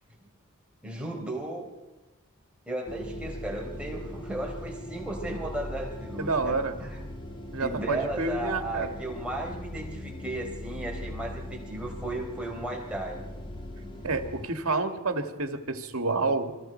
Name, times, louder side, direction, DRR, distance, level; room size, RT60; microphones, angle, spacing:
voice 1, 0.8-1.7 2.7-7.0 7.6-13.2, right 1 dB, 5° right, -2 dB, 4.1 m, -35 dB
sound 1, 2.9-14.5, equal, 25° left, 1.9 m, -40 dB
voice 2, 6.2-6.8 7.5-8.9 14.0-16.6, right 3 dB, 70° right, 5 dB, 2.0 m, -29 dB
28.5 x 22.5 x 4.5 m, 1.1 s
head